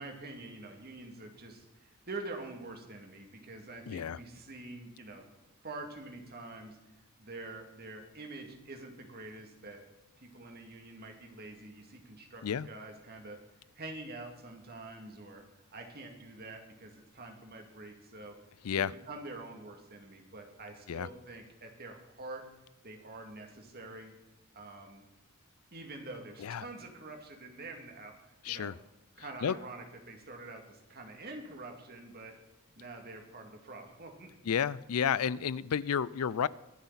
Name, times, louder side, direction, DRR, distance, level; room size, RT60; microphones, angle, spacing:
voice 1, 0.0-5.3 5.6-6.8 7.2-9.8 10.2-13.4 13.8-15.4 15.7-18.4 18.8-22.4 22.8-24.1 24.5-25.0 25.7-28.7 29.2-32.4 32.8-34.3, right 2 dB, 45° right, 3 dB, 2.5 m, -46 dB
voice 2, 3.9-4.2 12.4-12.7 18.6-18.9 20.9-21.1 26.4-26.7 28.4-28.8 29.4-29.5 34.5-36.5, left 7 dB, 85° left, 20 dB, 0.4 m, -31 dB
23.5 x 8.0 x 4.2 m, 1.0 s
head